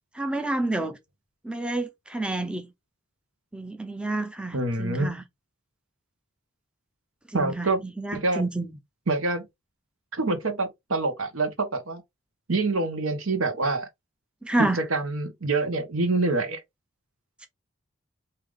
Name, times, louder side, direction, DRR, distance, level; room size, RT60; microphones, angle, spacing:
voice 1, 0.1-1.0 1.4-2.7 3.5-5.2 7.3-7.7 8.0-8.7 14.4-14.8, right 2 dB, 5° right, 0.4 m, -29 dB
voice 2, 4.5-5.1 7.3-7.8 8.1-8.4 9.1-9.5 10.1-12.0 12.5-13.9 14.6-16.6, right 3 dB, 85° right, 1.2 m, -26 dB
4.9 x 2.8 x 3.5 m
head